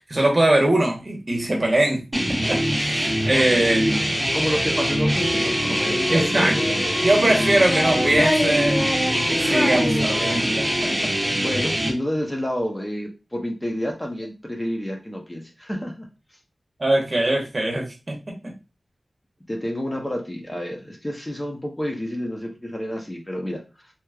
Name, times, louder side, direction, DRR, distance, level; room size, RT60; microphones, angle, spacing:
voice 1, 0.1-3.9 6.1-6.8 7.0-8.8 9.1-10.9 16.8-18.2, right 1 dB, 45° right, 0 dB, 1.0 m, -22 dB
sound 1, 2.1-11.9, equal, 15° right, 1.1 m, -23 dB
voice 2, 3.3-6.7 7.3-7.4 11.3-16.1 19.5-23.6, equal, 20° left, 1 dB, 0.8 m, -29 dB
Child speech kid speaking, 3.8-5.4 6.2-7.0 7.5-10.6, left 1 dB, 50° left, 1.5 m, -28 dB
sound 2, 5.2-12.4, left 1 dB, 70° left, 0.6 m, -32 dB
3.1 x 2.9 x 2.3 m, 0.28 s
wide cardioid pair, 60°, 0 cm